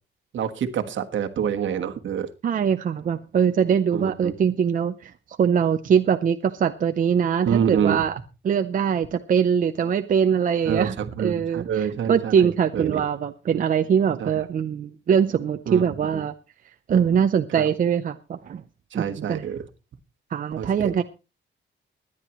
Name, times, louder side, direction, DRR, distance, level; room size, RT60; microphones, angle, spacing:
voice 1, 0.3-2.3 3.9-4.3 7.4-8.0 10.6-13.0 14.2-14.3 15.7-15.9 16.1-16.2 18.9-19.7 20.6-20.9, right 8 dB, 70° right, 1.4 m, -27 dB
voice 2, 2.4-5.1 5.4-8.1 8.4-16.3 16.9-18.6 18.9-19.4 20.3-21.0, right 7 dB, 40° right, 0.6 m, -22 dB
23.5 x 10.0 x 3.0 m
wide cardioid pair, 180°, 21 cm